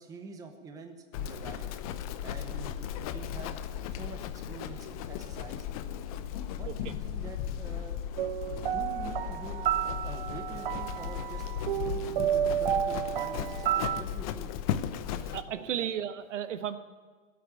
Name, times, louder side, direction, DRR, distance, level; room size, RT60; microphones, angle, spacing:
voice 1, 0.0-1.7 2.2-3.6 3.9-5.6 6.5-8.0 8.5-9.7 10.0-14.5 15.5-15.9, right 4 dB, 10° right, 6 dB, 0.9 m, -46 dB
Livestock farm animals working animals, 1.1-15.4, left 9 dB, 30° left, 0.6 m, -36 dB
sound 1, 8.2-14.0, right 11 dB, 40° right, 0.5 m, -31 dB
voice 2, 15.2-16.8, right 9 dB, 65° right, 11 dB, 1.3 m, -34 dB
16.5 x 8.9 x 9.6 m, 1.4 s
hypercardioid pair, 140°, 40 cm